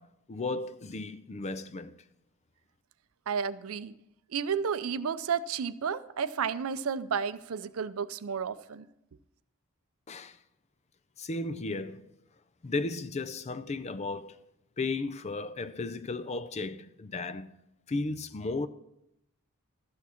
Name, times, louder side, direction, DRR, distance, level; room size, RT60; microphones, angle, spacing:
voice 1, 0.0-1.9 10.1-10.4 11.2-12.1 12.6-14.4 14.8-17.5 17.9-18.7, left 3 dB, 30° left, 0.4 m, -35 dB
voice 2, 3.3-3.9 4.3-8.9, right 6 dB, 70° right, 0.5 m, -32 dB
12.5 x 8.4 x 4.3 m
head